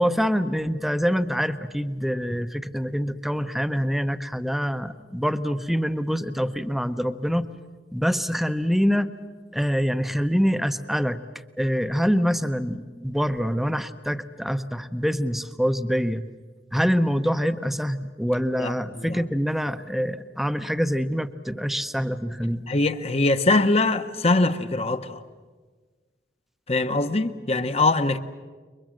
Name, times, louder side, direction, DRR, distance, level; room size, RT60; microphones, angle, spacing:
voice 1, 0.0-7.5 7.9-9.1 9.5-16.2 16.7-22.7, equal, ahead, 0.8 m, -25 dB
voice 2, 18.6-19.2 22.7-25.2 26.7-28.2, left 2 dB, 35° left, 1.1 m, -22 dB
29.0 x 23.0 x 7.7 m
head